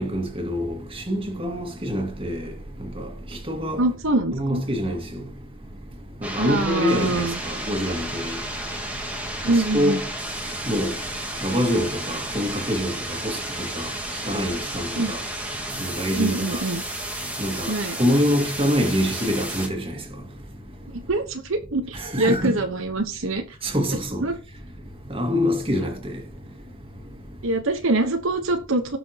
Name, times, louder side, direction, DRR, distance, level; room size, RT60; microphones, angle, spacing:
voice 1, 0.0-2.5 2.8-3.1 3.5-3.8 4.3-5.2 6.2-8.4 9.5-10.0 10.7-10.9 11.4-13.0 13.2-13.9 14.3-15.2 15.8-16.6 17.4-17.7 18.0-19.9 21.9-22.6 23.6-24.2 25.1-26.2, equal, 25° right, 2.1 m, -25 dB
voice 2, 3.8-4.6 6.4-7.4 9.4-10.0 15.0-15.1 16.2-16.8 17.7-18.0 20.9-23.6 24.2-24.4 27.4-29.0, right 2 dB, 70° right, 1.2 m, -24 dB
sound 1, 6.2-19.7, right 1 dB, 5° right, 1.8 m, -32 dB
18.0 x 6.2 x 3.0 m
head